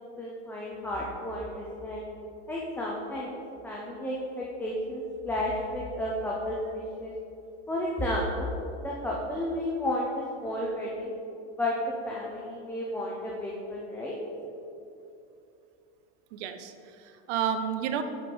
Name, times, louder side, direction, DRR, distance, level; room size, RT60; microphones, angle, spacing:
voice 1, 0.2-2.1 2.5-3.4 3.6-7.1 7.7-8.5 8.8-11.1 11.5-11.8 12.0-14.2, left 1 dB, 5° left, -4 dB, 0.6 m, -32 dB
voice 2, 16.3-18.0, right 8 dB, 90° right, 8 dB, 0.7 m, -31 dB
9.3 x 4.9 x 3.9 m, 2.7 s
supercardioid pair, 140°, 35 cm